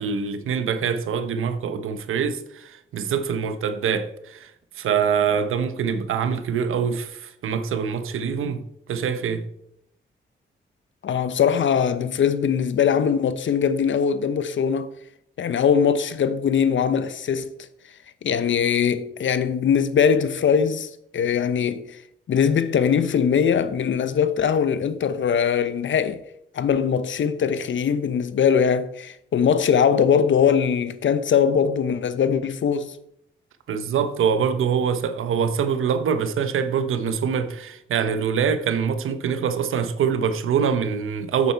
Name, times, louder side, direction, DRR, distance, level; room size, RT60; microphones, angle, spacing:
voice 1, 0.0-4.5 4.8-8.6 8.9-9.4 33.7-41.5, right 7 dB, 90° right, 0.9 m, -24 dB
voice 2, 11.0-14.9 15.4-17.5 18.2-22.0 22.3-26.2 26.5-32.9, left 7 dB, 70° left, 0.8 m, -21 dB
8.4 x 7.7 x 4.5 m
cardioid pair, 75°, 21 cm